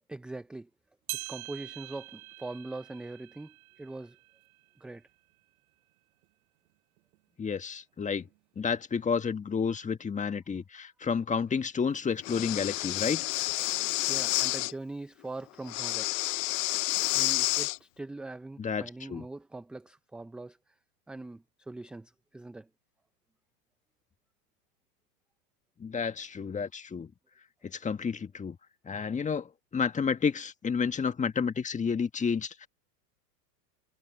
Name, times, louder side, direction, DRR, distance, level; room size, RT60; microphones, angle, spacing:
voice 1, 0.1-0.7 1.3-4.2 4.8-5.0 14.1-16.1 17.1-20.6 21.1-22.7, right 2 dB, ahead, 0.4 m, -42 dB
sound 1, 1.1-5.7 6.2-6.3 7.1-7.2 8.2-8.3, right 22 dB, 65° right, 7.3 m, -45 dB
voice 2, 7.4-8.3 8.6-13.2 18.6-19.3 25.8-27.1 27.6-28.6 28.8-32.7, left 6 dB, 15° left, 1.6 m, -31 dB
Breathing, 12.2-14.7 15.7-17.8, left 24 dB, 55° left, 0.6 m, -29 dB
hypercardioid pair, 120°, 48 cm